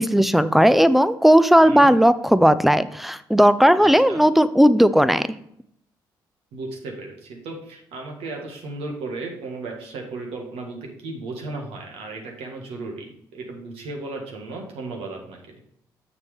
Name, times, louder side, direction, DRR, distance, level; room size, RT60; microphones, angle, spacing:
voice 1, 0.0-5.3, equal, ahead, 14 dB, 0.5 m, -16 dB
voice 2, 1.6-1.9 3.8-4.2 6.5-15.6, right 3 dB, 70° right, 1 dB, 1.8 m, -35 dB
6.8 x 6.8 x 3.5 m, 0.71 s
hypercardioid pair, 45°, 10 cm